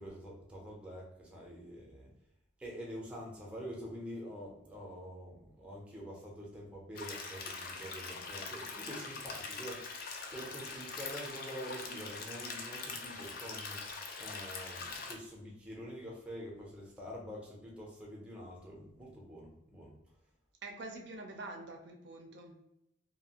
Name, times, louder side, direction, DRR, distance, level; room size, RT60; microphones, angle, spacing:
voice 1, 0.0-2.1 2.6-19.9, equal, 5° right, -3 dB, 0.6 m, -46 dB
sound 1, 6.9-15.1, left 4 dB, 50° left, 0.4 m, -43 dB
voice 2, 20.6-22.7, right 2 dB, 60° right, 2 dB, 0.4 m, -46 dB
2.7 x 2.4 x 2.8 m, 0.84 s
head